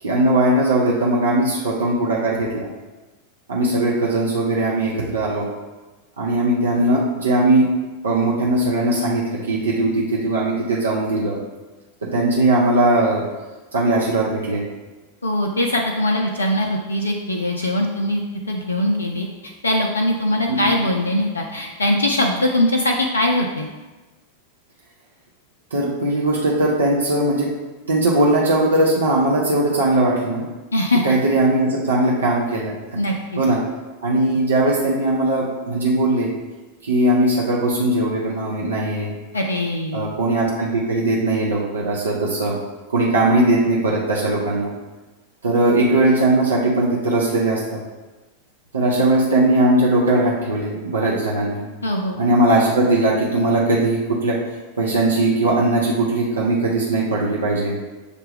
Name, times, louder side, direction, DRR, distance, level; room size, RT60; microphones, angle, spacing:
voice 1, 0.0-2.7 3.5-5.5 6.2-7.7 8.0-11.4 12.0-13.2 13.7-14.6 20.6-20.7 25.7-27.5 27.9-30.4 31.0-33.0 33.4-33.6 34.0-36.3 36.8-39.1 39.9-42.6 42.9-44.7 45.4-47.8 48.7-51.7 52.2-54.4 54.8-57.8, right 2 dB, 70° right, -3 dB, 0.6 m, -19 dB
voice 2, 15.2-23.7 30.7-31.0 32.9-33.4 39.3-40.1 51.8-52.2, left 1 dB, 75° left, 1 dB, 0.3 m, -21 dB
6.4 x 2.2 x 3.3 m, 1.2 s
figure-of-eight pair, 90°, 0 cm